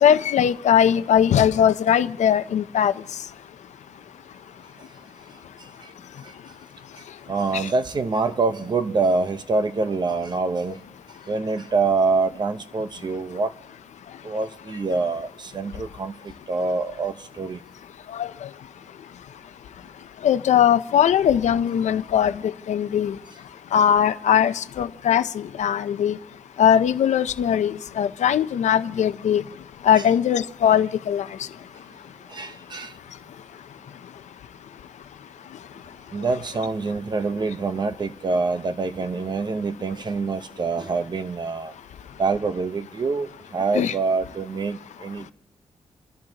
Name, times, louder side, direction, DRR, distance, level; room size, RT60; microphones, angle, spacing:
voice 1, 0.0-2.9 7.5-7.7 18.1-18.3 20.2-23.2 23.7-26.2 26.6-29.4 29.8-31.3 43.7-43.9, left 9 dB, 80° left, 0.6 m, -20 dB
voice 2, 7.3-10.7 11.3-13.5 14.2-16.1 16.5-17.6 32.3-32.9 36.1-41.7 42.2-45.3, right 4 dB, 40° right, 0.9 m, -25 dB
28.5 x 13.5 x 2.9 m
wide cardioid pair, 135°, 12 cm